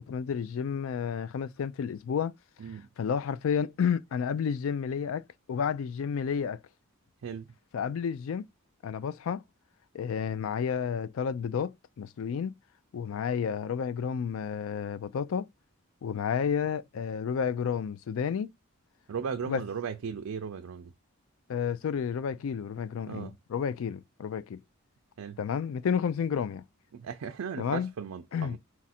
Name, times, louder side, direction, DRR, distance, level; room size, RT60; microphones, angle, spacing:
voice 1, 0.0-2.3 3.0-5.2 5.5-6.6 7.7-8.4 8.8-9.4 9.9-12.5 12.9-15.5 16.0-18.5 19.5-19.6 21.5-24.6 25.4-26.6 27.6-27.9 28.3-28.6, left 7 dB, 70° left, 0.3 m, -31 dB
voice 2, 7.2-7.5 19.1-20.9 23.1-23.3 25.2-25.4 26.9-28.6, right 6 dB, 80° right, 0.4 m, -36 dB
4.1 x 2.4 x 4.1 m
head